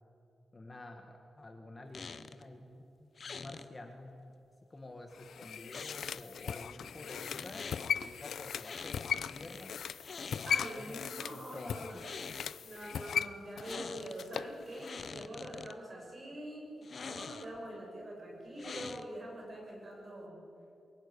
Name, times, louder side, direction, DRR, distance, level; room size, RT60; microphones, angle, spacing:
voice 1, 0.5-4.4 4.7-9.7 10.4-11.0 11.3-12.1, left 2 dB, 20° left, 4 dB, 1.6 m, -49 dB
sound 1, 1.9-2.4 3.2-3.7 5.7-6.4 7.1-7.9 8.6-9.7 10.0-11.0 11.8-12.5 13.6-14.2 14.6-15.7 16.8-17.7 18.6-19.3, left 5 dB, 45° left, 0.9 m, -45 dB
sound 2, 5.1-14.6 14.9-15.0, left 8 dB, 75° left, 0.6 m, -38 dB
voice 2, 10.5-12.0 12.6-16.7 17.1-20.4, right 1 dB, 30° right, -2 dB, 7.0 m, -44 dB
23.0 x 21.5 x 9.8 m, 2.7 s
wide cardioid pair, 175°, 0 cm